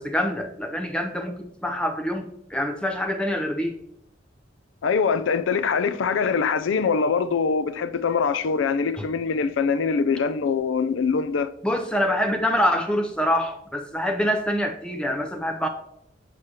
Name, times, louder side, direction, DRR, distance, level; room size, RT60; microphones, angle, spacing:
voice 1, 0.0-3.8 11.6-15.7, equal, 5° left, 0.5 m, -25 dB
voice 2, 4.8-11.5, left 5 dB, 85° left, 0.4 m, -23 dB
6.4 x 6.3 x 2.8 m
head